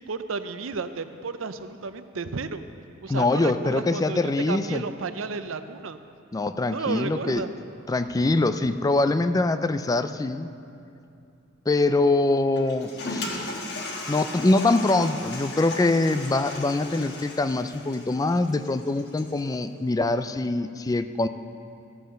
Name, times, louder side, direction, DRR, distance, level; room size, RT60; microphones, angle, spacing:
voice 1, 0.0-2.7 3.0-6.0 6.7-7.5, right 4 dB, 80° right, 11 dB, 0.6 m, -32 dB
voice 2, 3.1-4.8 6.3-7.4 7.9-10.5 11.7-13.6 14.1-21.3, left 2 dB, 20° left, 11 dB, 0.3 m, -24 dB
Toilet flush, 12.6-19.5, left 2 dB, 60° left, 1.4 m, -36 dB
13.5 x 8.0 x 6.3 m, 2.6 s
head